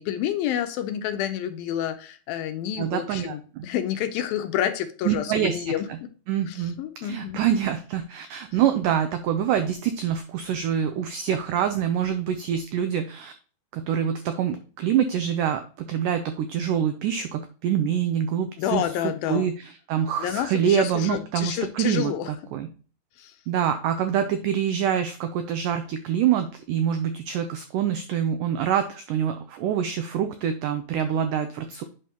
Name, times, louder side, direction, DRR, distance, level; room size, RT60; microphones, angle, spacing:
voice 1, 0.0-6.1 6.5-7.4 18.6-19.5 20.2-22.3 23.2-23.3, left 10 dB, 80° left, 8 dB, 2.3 m, -29 dB
voice 2, 2.8-3.7 5.0-6.0 6.3-6.8 7.0-13.3 13.7-18.9 19.3-22.7 23.5-31.8, right 9 dB, 90° right, 8 dB, 1.8 m, -25 dB
8.2 x 5.4 x 2.9 m, 0.39 s
omnidirectional pair, 4.5 m